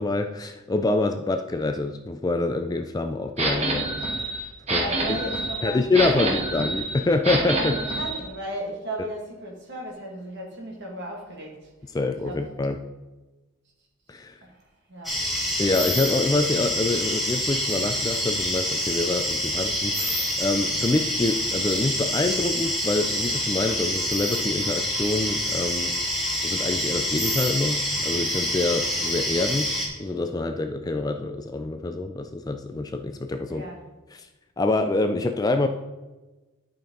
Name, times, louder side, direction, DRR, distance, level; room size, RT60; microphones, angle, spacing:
voice 1, 0.0-3.9 4.7-5.2 5.6-7.8 11.9-12.8 14.1-14.3 15.6-25.9 26.4-29.7 30.0-33.6 34.1-34.3 34.6-35.7, left 2 dB, 15° left, 6 dB, 0.3 m, -26 dB
sound 1, 3.4-8.2, right 2 dB, 30° right, 1.3 m, -27 dB
voice 2, 4.7-6.4 7.4-11.7 12.2-12.5 14.4-14.6 14.9-15.2 33.5-33.8, right 1 dB, 50° right, -1 dB, 1.9 m, -35 dB
sound 2, 15.0-29.9, equal, ahead, 1.8 m, -27 dB
11.0 x 5.3 x 3.8 m, 1.1 s
head